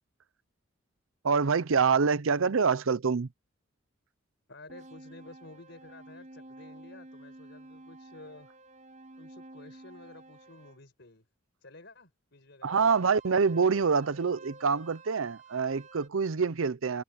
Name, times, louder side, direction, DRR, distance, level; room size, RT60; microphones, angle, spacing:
voice 1, 1.2-3.3 12.6-17.0, right 5 dB, 75° right, 0.6 m, -26 dB
voice 2, 4.5-8.5 9.2-11.2 11.6-12.7, left 2 dB, 60° left, 5.0 m, -52 dB
sound 1, 4.7-10.8 12.7-16.1, right 2 dB, 35° right, 5.6 m, -51 dB
head